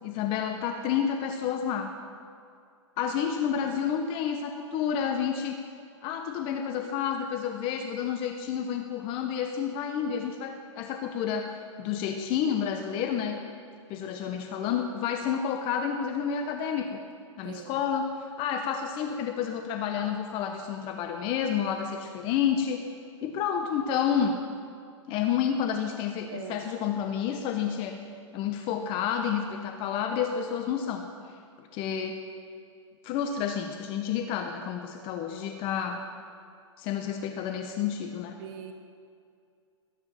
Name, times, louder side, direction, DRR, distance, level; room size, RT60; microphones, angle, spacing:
voice 1, 0.0-1.9 3.0-5.6 6.0-11.5 11.8-13.4 13.9-17.0 17.4-22.9 23.2-24.4 25.1-28.0 28.3-31.1 31.7-32.2 33.0-36.0 36.8-38.4, left 8 dB, 35° left, 5 dB, 1.1 m, -30 dB
voice 2, 17.4-17.8 26.3-26.6 38.4-38.7, right 8 dB, 45° right, 5 dB, 1.2 m, -40 dB
20.5 x 9.6 x 5.9 m, 2.3 s
hypercardioid pair, 130°, 16 cm